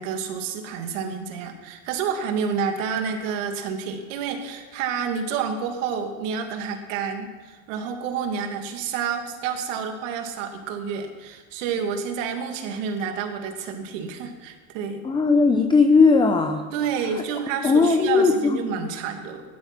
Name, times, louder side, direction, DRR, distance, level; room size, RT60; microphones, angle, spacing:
voice 1, 0.0-15.1 16.7-19.4, right 6 dB, 70° right, 4 dB, 2.5 m, -29 dB
voice 2, 15.0-16.6 17.0-17.2 17.6-18.6, left 4 dB, 10° left, 5 dB, 0.8 m, -18 dB
16.5 x 12.0 x 5.9 m, 1.4 s
supercardioid pair, 130°, 40 cm